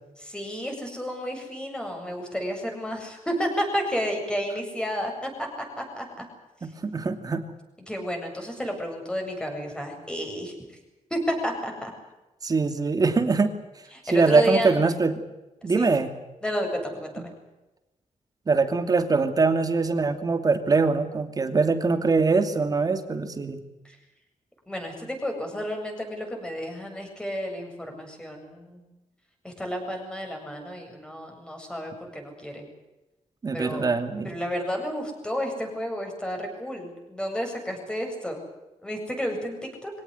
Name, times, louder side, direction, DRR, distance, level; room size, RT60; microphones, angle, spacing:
voice 1, 0.2-5.3 5.8-6.3 7.8-10.5 11.1-11.9 13.9-14.7 15.6-15.9 16.4-17.3 23.8-24.0 24.7-28.8 29.4-32.7 33.5-33.9 34.2-38.4 38.8-39.9, equal, 5° left, 2 dB, 7.7 m, -31 dB
voice 2, 6.8-7.5 12.4-13.5 14.1-15.2 15.6-16.1 18.5-23.6 33.4-34.3, right 4 dB, 30° right, 8 dB, 2.7 m, -23 dB
24.5 x 18.0 x 9.7 m, 1.0 s
wide cardioid pair, 150°, 12 cm